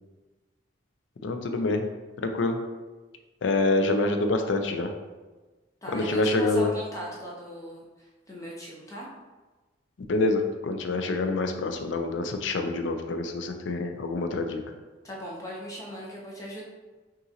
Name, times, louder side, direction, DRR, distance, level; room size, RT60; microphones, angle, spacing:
voice 1, 1.2-1.9 2.2-2.6 3.4-4.9 5.9-6.7 10.1-14.6, left 2 dB, 75° left, 6 dB, 0.4 m, -26 dB
voice 2, 5.8-9.1 15.0-16.6, equal, 15° left, -4 dB, 0.6 m, -39 dB
5.6 x 2.5 x 2.8 m, 1.2 s
head